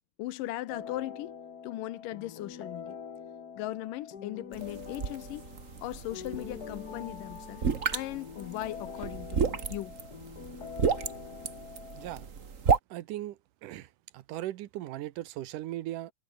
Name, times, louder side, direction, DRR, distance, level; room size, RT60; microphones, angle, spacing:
voice 1, 0.2-1.3 1.6-3.0 3.6-5.5 5.8-7.6 7.9-10.0, left 16 dB, 85° left, 2.5 m, -38 dB
sound 1, 0.7-12.3, left 7 dB, 40° left, 1.4 m, -45 dB
sound 2, 4.5-12.8, right 6 dB, 50° right, 0.9 m, -33 dB
voice 2, 11.9-12.3 12.9-16.1, right 14 dB, 75° right, 2.5 m, -38 dB
omnidirectional pair, 3.8 m